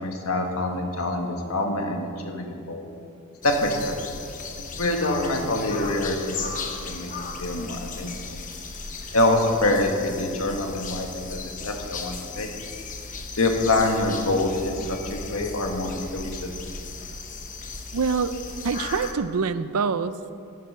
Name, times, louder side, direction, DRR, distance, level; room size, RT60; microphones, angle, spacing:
voice 1, 0.0-2.9 3.4-3.9 4.8-6.5 6.8-7.1 7.4-8.4 9.1-12.5 13.4-16.7, left 2 dB, 65° left, 3 dB, 1.6 m, -25 dB
sound 1, 3.4-19.1, left 4 dB, 35° left, 0.9 m, -36 dB
voice 2, 17.9-18.4 18.6-20.2, right 5 dB, 80° right, 13 dB, 0.5 m, -25 dB
12.5 x 7.8 x 6.8 m, 2.5 s
head